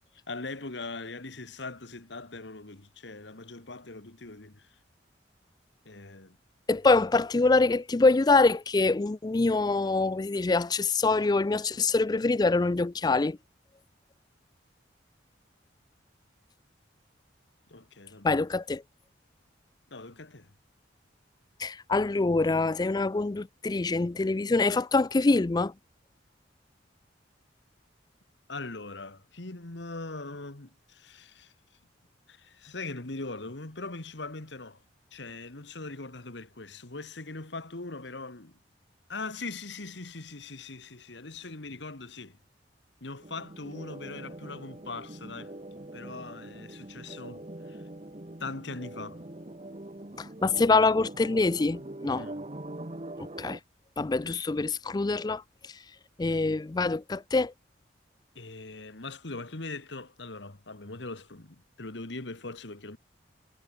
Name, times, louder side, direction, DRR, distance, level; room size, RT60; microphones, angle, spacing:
voice 1, 0.3-4.7 5.9-6.4 17.7-18.5 19.9-20.5 28.5-31.5 32.3-34.8 35.1-38.5 39.1-42.4 43.0-45.5 45.9-47.8 48.4-49.2 52.2-52.4 58.4-63.0, left 3 dB, 70° left, 1.8 m, -41 dB
voice 2, 6.7-13.4 18.2-18.8 21.6-25.7 50.2-52.3 53.4-53.6 54.0-55.4 56.2-57.5, left 3 dB, 20° left, 0.4 m, -25 dB
sound 1, 43.2-53.6, right 1 dB, 35° right, 1.4 m, -43 dB
head